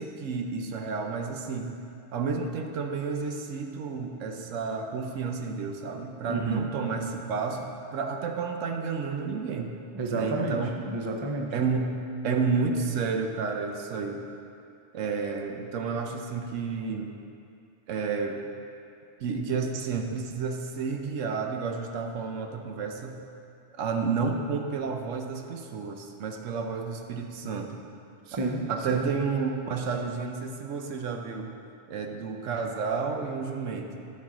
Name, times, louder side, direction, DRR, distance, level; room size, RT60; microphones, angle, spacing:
voice 1, 0.0-1.7 2.1-9.8 10.1-10.7 11.5-11.9 12.2-14.2 14.9-17.1 17.9-18.4 19.2-23.2 23.7-27.8 28.7-31.5 31.9-34.1, right 5 dB, 80° right, 4 dB, 1.0 m, -31 dB
voice 2, 6.3-6.7 9.9-11.6 28.3-29.1, right 2 dB, 35° right, 2 dB, 0.5 m, -31 dB
9.0 x 7.5 x 3.7 m, 2.5 s
omnidirectional pair, 1.3 m